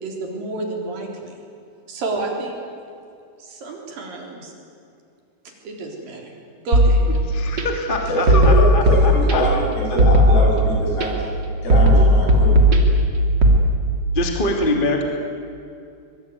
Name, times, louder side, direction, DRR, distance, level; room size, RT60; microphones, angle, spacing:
voice 1, 0.0-1.4 1.9-2.6 3.4-4.5 5.6-6.3 6.7-7.2, right 2 dB, 60° right, 1 dB, 5.3 m, -30 dB
sound 1, 6.7-7.6 8.3-9.6 10.0-11.1 11.7-13.6, equal, 30° right, 2.8 m, -15 dB
voice 2, 7.3-9.6 9.9-10.0 14.1-15.0, left 2 dB, 15° left, 2 dB, 2.3 m, -24 dB
voice 3, 8.1-11.3 11.6-12.7, equal, 75° left, -2 dB, 9.4 m, -23 dB
24.0 x 23.5 x 9.6 m, 2.5 s
omnidirectional pair, 4.7 m